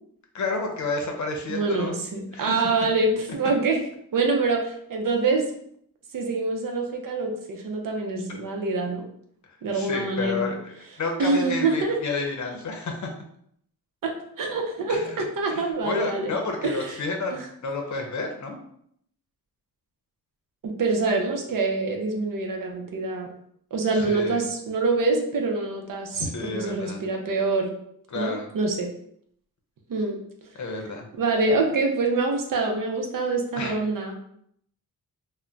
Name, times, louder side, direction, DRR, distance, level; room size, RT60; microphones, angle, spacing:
voice 1, 0.3-2.0 2.3-2.5 9.7-13.1 14.9-18.6 23.9-24.4 26.1-27.0 28.1-28.5 30.5-31.1 33.5-33.8, left 3 dB, 50° left, 2 dB, 0.7 m, -31 dB
voice 2, 1.5-3.8 4.1-5.4 6.1-9.1 9.6-10.5 11.2-12.0 14.0-16.3 16.6-16.9 17.3-17.4 20.6-23.3 23.7-27.7 28.1-28.9 29.9-30.2 31.1-34.1, right 3 dB, 60° right, 2 dB, 0.6 m, -25 dB
2.2 x 2.1 x 3.7 m, 0.68 s
cardioid pair, 90°, 37 cm